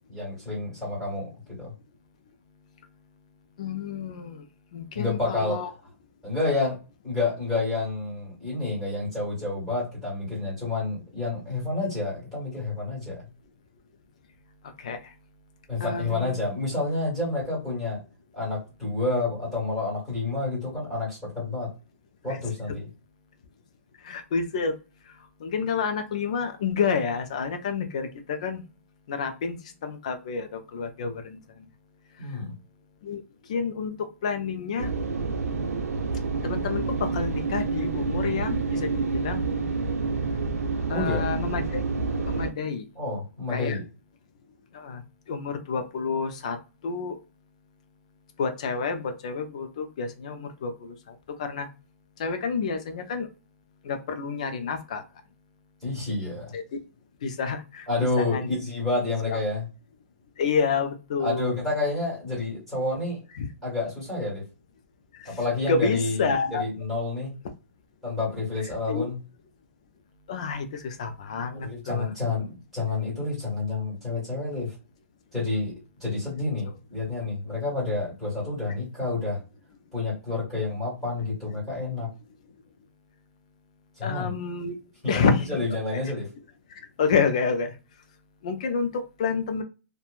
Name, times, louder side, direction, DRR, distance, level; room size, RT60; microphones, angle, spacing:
voice 1, 0.1-1.3 1.6-1.7 4.9-5.6 6.2-6.8 7.0-13.2 15.7-18.0 18.3-21.7 22.2-22.9 32.2-32.5 40.9-41.2 42.9-43.8 55.8-56.5 57.9-59.7 61.2-63.2 63.6-64.4 65.2-67.3 68.0-69.2 71.6-74.7 75.3-75.7 76.0-79.4 79.9-82.1 84.0-84.3 85.0-86.3, left 3 dB, ahead, -8 dB, 1.4 m, -29 dB
voice 2, 3.6-4.4 4.7-5.7 14.8-15.1 15.8-16.3 22.3-22.4 24.0-24.7 25.4-28.6 29.1-31.4 33.0-33.2 33.5-34.9 36.4-39.4 40.9-41.8 42.3-42.9 43.5-43.8 44.7-45.0 45.3-46.6 46.8-47.2 48.4-51.7 52.2-53.3 53.8-55.0 56.5-56.8 57.2-57.9 58.2-58.5 59.3-59.4 60.4-61.5 63.4-63.5 65.2-65.4 65.6-66.6 68.9-69.1 70.3-72.1 84.0-84.8 85.1-85.5 87.0-87.7 88.4-89.6, left 5 dB, 25° left, 7 dB, 0.3 m, -29 dB
sound 1, 34.8-42.5, right 4 dB, 75° right, 0.7 m, -28 dB
3.0 x 2.1 x 2.3 m, 0.32 s
hypercardioid pair, 180°, 8 cm